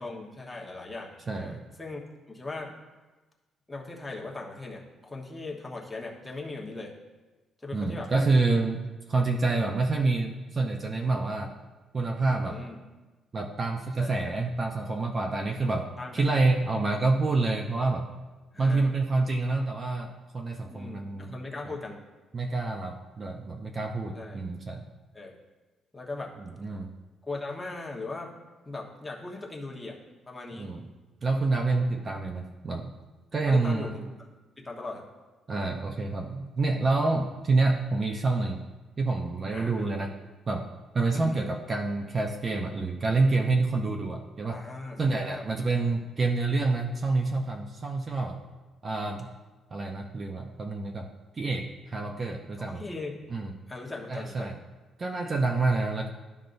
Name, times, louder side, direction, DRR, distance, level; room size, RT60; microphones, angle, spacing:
voice 1, 0.0-2.0 2.3-2.7 3.7-6.9 7.6-8.1 9.9-10.1 12.4-12.8 14.0-14.3 16.0-16.5 18.5-18.9 20.6-22.0 24.1-24.4 25.1-25.4 25.9-26.3 27.3-28.3 28.7-30.0 30.3-30.7 31.6-31.8 33.5-34.0 34.6-35.0 39.5-39.8 41.1-41.4 44.5-45.4 52.6-53.2 53.7-54.5, left 3 dB, 10° left, -3 dB, 1.2 m, -39 dB
voice 2, 1.3-1.6 7.7-11.5 11.9-12.6 13.3-18.1 18.6-21.4 21.7-21.8 22.3-24.9 26.4-26.9 30.5-30.8 31.2-32.9 33.3-34.0 35.5-38.6 39.0-40.1 40.5-40.7 40.9-44.6 45.0-48.4 48.8-49.3 49.7-51.1 51.4-52.8 53.3-53.5 54.1-54.5 55.0-56.1, right 3 dB, 35° right, 3 dB, 0.6 m, -27 dB
12.0 x 5.3 x 2.6 m, 1.2 s
cardioid pair, 120°, 0 cm